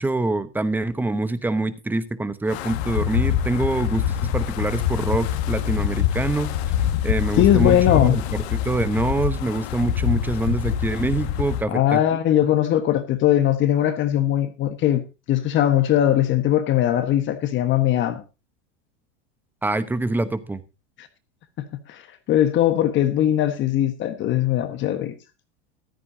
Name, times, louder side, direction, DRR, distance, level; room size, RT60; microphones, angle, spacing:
voice 1, 0.0-6.6 7.0-12.0 19.6-20.6, right 2 dB, 5° right, 0.9 m, -25 dB
Wind, 2.5-11.6, left 10 dB, 65° left, 1.8 m, -25 dB
voice 2, 7.4-8.2 11.7-18.2 21.0-21.1 21.6-22.0 22.3-25.2, left 12 dB, 35° left, 1.4 m, -20 dB
14.5 x 13.5 x 2.7 m
supercardioid pair, 145°, 34 cm